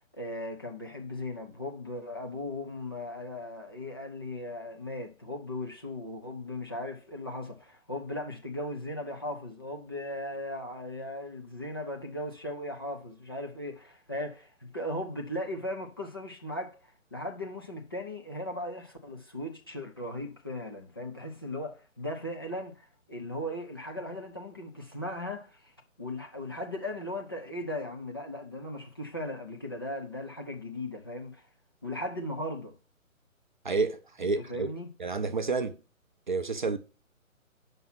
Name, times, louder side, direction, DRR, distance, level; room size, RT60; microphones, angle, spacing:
voice 1, 0.1-31.5 31.8-32.7 34.2-34.9, left 1 dB, 20° left, 0.5 m, -37 dB
voice 2, 33.6-34.7 35.0-35.8 36.3-36.8, right 4 dB, 35° right, 0.5 m, -29 dB
7.1 x 5.4 x 5.8 m
figure-of-eight pair, 145°, 41 cm